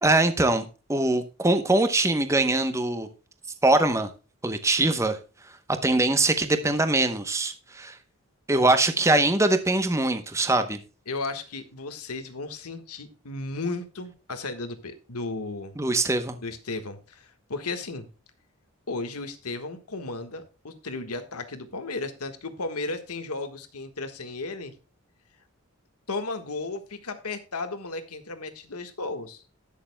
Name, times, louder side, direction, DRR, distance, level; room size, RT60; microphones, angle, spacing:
voice 1, 0.0-3.1 3.6-4.1 4.4-5.2 5.8-8.0 8.5-10.8 15.8-16.4, right 2 dB, 15° right, 0.8 m, -22 dB
voice 2, 11.1-15.7 16.4-18.1 18.9-24.7 26.1-29.4, left 3 dB, 90° left, 1.5 m, -34 dB
19.0 x 6.7 x 2.2 m
head